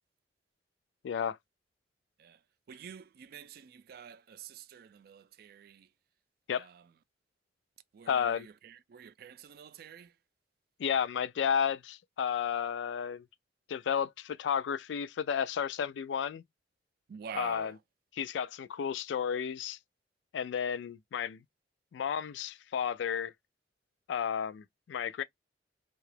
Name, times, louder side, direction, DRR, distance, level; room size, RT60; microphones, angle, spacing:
voice 1, 1.0-1.4 6.5-6.7 8.1-8.5 10.8-13.2 13.7-16.4 17.4-17.7 18.2-19.8 20.3-21.4 21.9-23.3 24.1-25.2, left 7 dB, 85° left, 0.3 m, -32 dB
voice 2, 2.2-5.9 6.5-6.9 7.9-10.2 17.1-17.8, right 7 dB, 55° right, 0.3 m, -48 dB
2.8 x 2.3 x 3.1 m
head